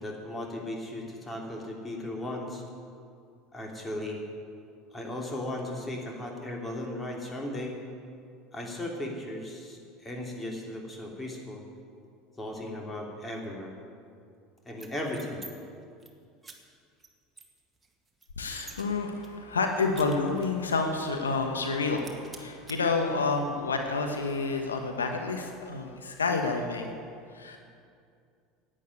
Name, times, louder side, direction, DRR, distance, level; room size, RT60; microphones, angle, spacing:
voice 1, 0.0-2.6 3.5-4.2 4.9-7.8 8.5-11.6 12.4-13.7 14.6-15.4, left 1 dB, 15° left, 0 dB, 3.2 m, -36 dB
sound 1, 14.7-15.5 15.8-16.1 16.4-16.6 17.0-17.1 17.4-18.8 19.2-20.6 21.0-21.1 21.4-21.7 22.0-22.8, right 3 dB, 15° right, 1.8 m, -48 dB
voice 2, 18.4-26.9 27.3-27.6, left 4 dB, 90° left, 4 dB, 1.1 m, -29 dB
11.0 x 9.1 x 9.6 m, 2.4 s
hypercardioid pair, 75°, 0 cm